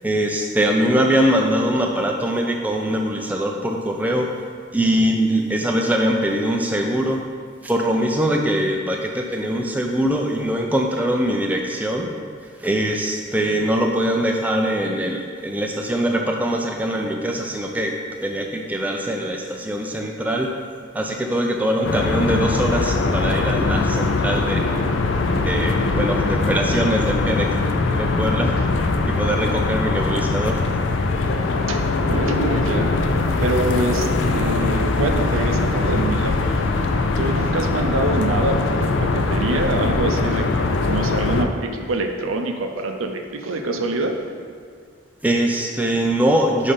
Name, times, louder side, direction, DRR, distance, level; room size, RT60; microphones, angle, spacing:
voice 1, 0.0-4.3 4.7-7.3 7.6-12.1 12.6-17.9 18.2-20.5 20.9-24.6 25.4-27.5 27.9-28.5 29.1-30.6 45.2-46.7, equal, 10° right, 1 dB, 0.3 m, -22 dB
sound 1, 21.8-41.4, left 3 dB, 65° left, 0.4 m, -21 dB
voice 2, 32.1-32.9 33.4-36.6 37.2-40.5 40.8-44.2, right 2 dB, 80° right, 4 dB, 0.6 m, -25 dB
5.5 x 4.1 x 5.1 m, 2.1 s
head